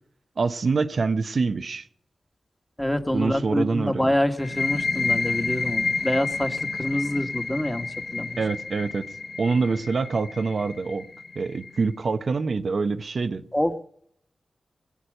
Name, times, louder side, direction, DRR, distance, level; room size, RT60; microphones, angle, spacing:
voice 1, 0.4-1.9 3.1-4.1 8.4-9.1 9.4-11.0 11.3-13.4, right 4 dB, 65° right, 0.8 m, -25 dB
voice 2, 2.8-8.4 13.5-13.9, left 1 dB, 10° left, 1.7 m, -26 dB
sound 1, 4.4-11.8, left 4 dB, 70° left, 3.5 m, -30 dB
21.0 x 8.6 x 6.6 m
cardioid pair, 50°, 0 cm